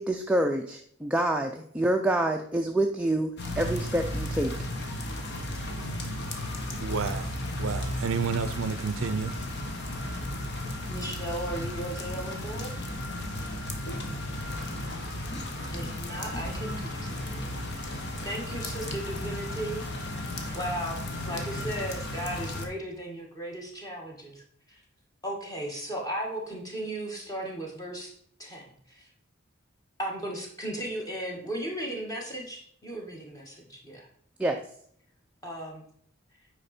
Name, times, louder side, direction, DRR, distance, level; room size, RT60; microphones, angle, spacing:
voice 1, 0.0-4.5 34.4-34.6, right 1 dB, 5° right, 0.4 m, -27 dB
sound 1, 3.4-22.7, left 1 dB, 50° left, 1.1 m, -34 dB
voice 2, 6.7-9.3, right 5 dB, 70° right, 0.5 m, -31 dB
voice 3, 10.9-12.7 15.7-17.5 18.2-19.8 20.5-24.4 24.7-24.8 25.2-28.1 28.4-29.1 30.0-34.1 35.4-35.9, right 1 dB, 15° left, 1.6 m, -36 dB
8.7 x 5.0 x 4.3 m
head